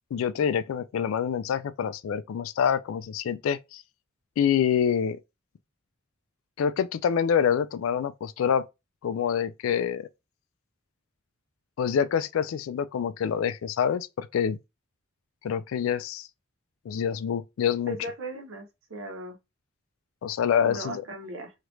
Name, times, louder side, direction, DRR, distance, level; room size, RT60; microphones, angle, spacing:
voice 1, 0.1-3.8 4.4-5.2 6.6-8.7 9.0-10.1 11.8-14.6 15.4-16.3 16.9-18.0 20.2-21.0, left 8 dB, 75° left, 0.3 m, -26 dB
voice 2, 17.9-19.4 20.6-21.5, right 1 dB, 70° right, 0.8 m, -37 dB
3.1 x 2.4 x 3.0 m
head